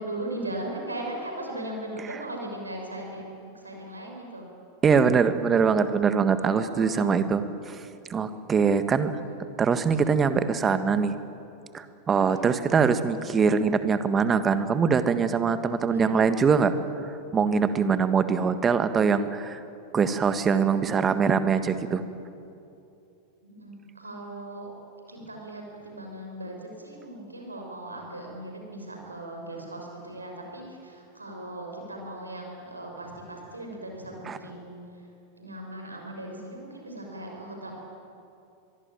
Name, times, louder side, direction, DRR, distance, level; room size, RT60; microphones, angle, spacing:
voice 1, 0.0-3.3 3.5-4.4 6.4-7.2 8.8-9.5 12.2-12.5 15.9-16.2 23.4-24.7 25.1-34.8 35.4-37.7, right 1 dB, 80° right, 1 dB, 6.3 m, -38 dB
voice 2, 4.8-7.8 8.1-9.2 9.6-11.2 11.7-16.7 17.0-19.6 19.9-22.0 34.3-34.4, right 6 dB, 20° right, 11 dB, 1.6 m, -23 dB
24.0 x 23.0 x 9.2 m, 2.7 s
figure-of-eight pair, 90°, 0 cm